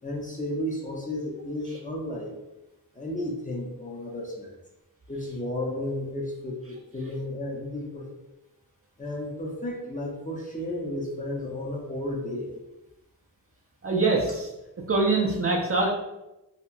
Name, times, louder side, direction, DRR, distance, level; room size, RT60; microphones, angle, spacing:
voice 1, 0.0-2.3 2.9-4.6 5.1-8.1 9.0-12.5, left 1 dB, 20° left, -2 dB, 0.5 m, -33 dB
voice 2, 13.8-14.5 14.8-15.9, right 3 dB, 35° right, -1 dB, 0.4 m, -24 dB
2.8 x 2.4 x 2.2 m, 0.95 s
cardioid pair, 60°, 40 cm